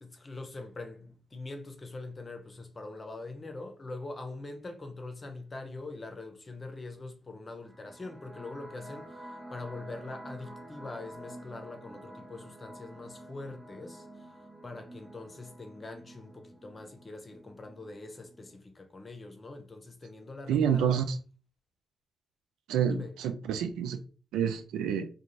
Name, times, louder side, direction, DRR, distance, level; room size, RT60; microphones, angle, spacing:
voice 1, 0.0-14.3 14.6-21.0 22.9-23.1, left 2 dB, 35° left, 0.8 m, -43 dB
sound 1, 7.6-18.6, right 1 dB, 35° right, 0.8 m, -49 dB
voice 2, 20.5-21.2 22.7-24.0 24.3-25.1, right 8 dB, 80° right, 0.3 m, -28 dB
2.4 x 2.3 x 3.0 m
hypercardioid pair, 40°, 0 cm